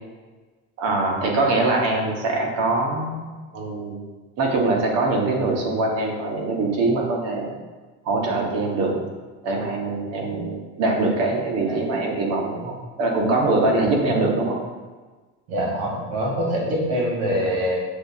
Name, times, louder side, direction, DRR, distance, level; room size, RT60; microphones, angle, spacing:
voice 1, 0.8-3.2 3.5-4.0 4.4-7.5 8.0-9.0 9.4-14.6, right 2 dB, 55° right, 0 dB, 0.9 m, -23 dB
voice 2, 13.8-14.3 15.5-17.8, equal, 80° right, -1 dB, 1.3 m, -25 dB
6.4 x 2.4 x 2.7 m, 1.3 s
cardioid pair, 145°, 31 cm